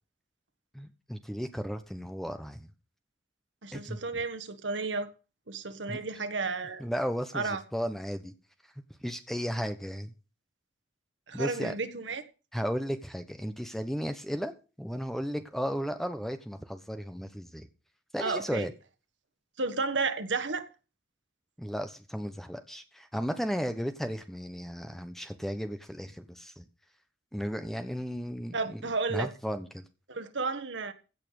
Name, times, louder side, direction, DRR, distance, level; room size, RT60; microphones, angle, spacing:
voice 1, 0.7-2.7 3.7-4.2 5.9-6.0 6.8-8.3 9.0-10.1 11.3-11.7 12.5-14.5 14.8-17.7 18.1-18.7 21.6-26.6 27.3-28.8 29.1-29.8, equal, ahead, 1.1 m, -34 dB
voice 2, 3.6-5.1 5.5-6.9 7.3-7.6 11.3-12.2 18.2-18.7 19.6-20.7 28.5-29.3 30.1-30.9, right 4 dB, 80° right, 1.5 m, -32 dB
16.0 x 5.8 x 6.6 m
head